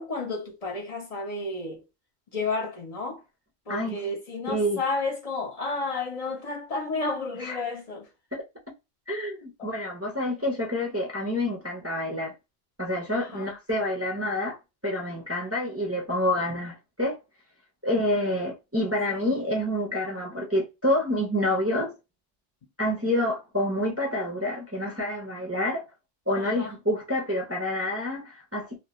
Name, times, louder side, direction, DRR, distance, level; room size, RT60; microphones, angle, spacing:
voice 1, 0.0-1.8 2.3-3.2 3.7-8.1 9.6-9.7 13.3-13.5 19.1-19.3 26.3-26.7, left 3 dB, 40° left, 0.6 m, -32 dB
voice 2, 4.5-4.8 7.4-7.6 8.3-8.4 9.1-12.3 12.8-14.6 14.8-17.2 17.8-21.9 22.8-25.8 26.3-28.8, left 1 dB, 20° right, 0.4 m, -28 dB
2.3 x 2.1 x 2.8 m
omnidirectional pair, 1.3 m